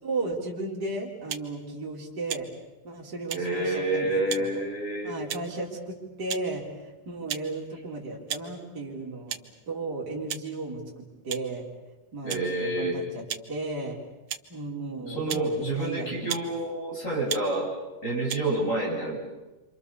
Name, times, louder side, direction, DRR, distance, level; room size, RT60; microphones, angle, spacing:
voice 1, 0.0-2.5 2.8-4.6 5.0-9.4 9.7-10.8 11.2-11.6 12.1-14.0 14.5-16.4, right 2 dB, 30° right, -4 dB, 4.7 m, -34 dB
sound 1, 1.3-1.5 2.3-2.5 3.3-3.4 4.3-4.5 5.3-5.6 6.3-6.4 7.3-7.5 8.3-8.5 9.3-9.4 10.3-10.5 11.3-11.5 12.3-12.4 13.3-13.4 14.3-14.4 15.3-15.5 16.3-16.5 17.3-17.4 18.3-18.4, right 9 dB, 65° right, 1.4 m, -34 dB
voice 2, 3.3-5.1 12.2-13.0 15.0-17.7 18.0-19.2, right 2 dB, 20° left, -2 dB, 7.6 m, -28 dB
27.5 x 27.0 x 7.1 m, 1.1 s
omnidirectional pair, 3.8 m